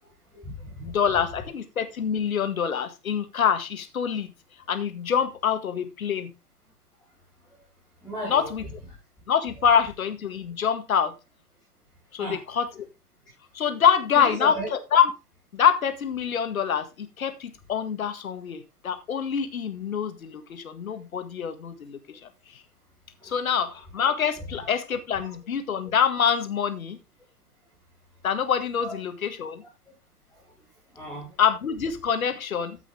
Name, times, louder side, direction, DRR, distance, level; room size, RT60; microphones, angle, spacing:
voice 1, 0.0-0.8 8.0-8.5 12.2-12.4 14.2-14.7 20.9-21.0 23.2-23.3 24.5-24.7 25.2-25.3 28.8-28.9 30.3-30.4 30.9-31.4, right 1 dB, ahead, 4.0 m, -36 dB
voice 2, 0.8-4.3 4.7-6.3 8.2-8.7 9.3-11.1 12.1-12.8 13.5-15.1 15.5-22.6 23.2-27.0 28.2-29.6 31.4-32.8, left 7 dB, 60° left, 1.8 m, -25 dB
14.0 x 6.0 x 3.6 m
figure-of-eight pair, 135°, 48 cm